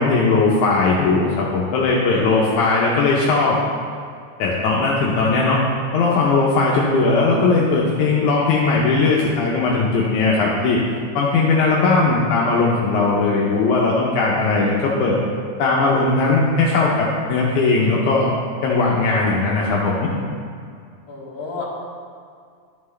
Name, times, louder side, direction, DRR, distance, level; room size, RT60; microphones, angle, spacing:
voice 1, 0.0-3.6 4.4-5.6 5.9-10.8 11.2-15.2 15.6-18.3 18.6-20.1, left 3 dB, 80° left, -4 dB, 2.2 m, -18 dB
voice 2, 2.1-2.9 21.1-21.6, left 4 dB, 55° left, -6 dB, 2.7 m, -34 dB
12.5 x 5.8 x 3.3 m, 2.2 s
omnidirectional pair, 3.5 m